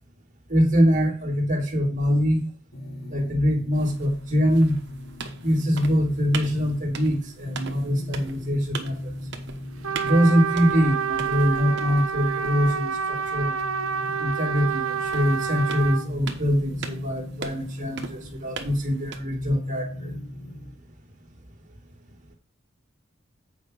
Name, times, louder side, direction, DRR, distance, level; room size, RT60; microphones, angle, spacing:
voice 1, 0.5-2.4 3.1-4.8 5.4-9.0 10.0-13.6 14.2-20.1, equal, 35° right, 1 dB, 2.1 m, -23 dB
sound 1, 2.7-20.7, left 1 dB, 80° left, 3.1 m, -38 dB
sound 2, 3.7-19.2, right 4 dB, 55° right, 1.2 m, -41 dB
Trumpet, 9.8-16.0, right 6 dB, 85° right, 0.9 m, -28 dB
8.3 x 5.1 x 5.1 m, 0.42 s
head